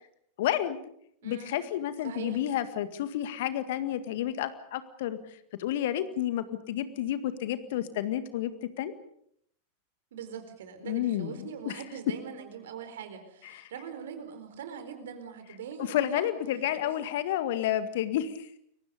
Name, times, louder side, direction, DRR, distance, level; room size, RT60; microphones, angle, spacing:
voice 1, 0.4-0.8 1.2-5.2 5.6-8.5 8.8-8.9 10.8-11.8 13.5-13.6 15.8-18.6, left 12 dB, 55° left, 11 dB, 1.9 m, -30 dB
voice 2, 1.2-1.6 2.0-2.4 10.1-16.3 16.8-17.0, right 7 dB, 60° right, 8 dB, 4.4 m, -42 dB
30.0 x 23.5 x 5.3 m, 0.69 s
figure-of-eight pair, 90°, 0 cm